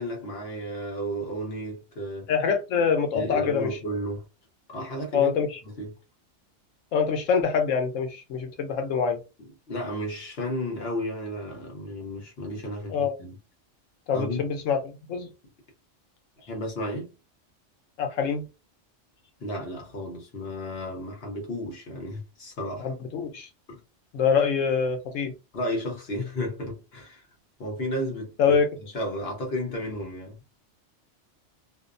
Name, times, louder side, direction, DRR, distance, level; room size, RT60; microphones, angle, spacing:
voice 1, 0.0-2.3 3.1-4.2 4.7-5.3 5.6-5.9 9.7-13.4 14.1-14.4 16.5-17.1 19.4-22.9 23.7-23.8 25.5-27.2 27.6-28.6 28.9-30.4, equal, 55° left, 1.1 m, -33 dB
voice 2, 2.3-3.8 5.1-5.6 6.9-9.2 12.9-13.2 14.1-15.3 18.0-18.5 22.8-23.5 24.1-25.3 28.4-28.7, left 6 dB, 85° left, 1.0 m, -25 dB
2.7 x 2.0 x 2.5 m
omnidirectional pair, 1.3 m